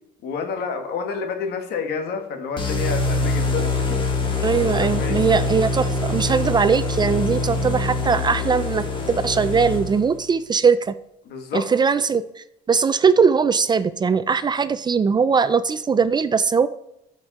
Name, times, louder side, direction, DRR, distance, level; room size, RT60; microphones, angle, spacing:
voice 1, 0.2-3.7 4.8-5.3 11.2-11.7, left 5 dB, 70° left, 5 dB, 1.8 m, -29 dB
sound 1, 2.6-10.2, left 3 dB, 30° left, 1.9 m, -24 dB
voice 2, 4.4-10.9 11.5-16.7, right 5 dB, 25° right, 14 dB, 0.4 m, -20 dB
12.5 x 5.2 x 4.2 m, 0.87 s
cardioid pair, 110°, 17 cm